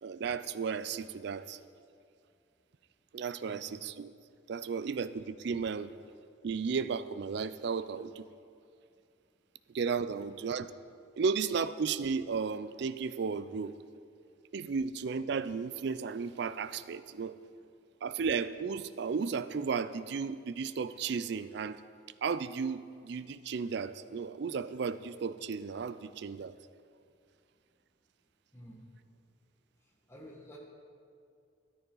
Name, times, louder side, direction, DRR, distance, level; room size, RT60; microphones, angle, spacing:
voice 1, 0.0-1.6 3.1-4.1 4.5-5.9 6.4-8.3 9.7-10.7 11.2-13.7 14.5-17.4 18.0-21.8 22.2-26.5, right 5 dB, 55° right, 14 dB, 0.4 m, -34 dB
voice 2, 28.5-28.8 30.1-30.6, equal, 15° left, -2 dB, 1.5 m, -51 dB
13.5 x 10.5 x 3.9 m, 2.4 s
head